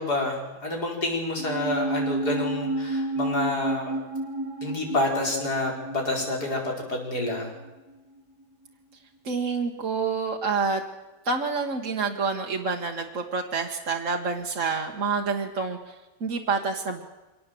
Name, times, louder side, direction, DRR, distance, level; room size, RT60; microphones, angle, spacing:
voice 1, 0.0-3.9 4.6-7.5, left 2 dB, 65° left, 0 dB, 5.5 m, -28 dB
sound 1, 1.4-7.9 8.2-8.3, right 2 dB, 65° right, 2.2 m, -31 dB
voice 2, 9.2-10.8 11.3-17.0, right 4 dB, 50° right, 1 dB, 1.9 m, -28 dB
25.0 x 18.5 x 7.8 m, 1.1 s
omnidirectional pair, 1.8 m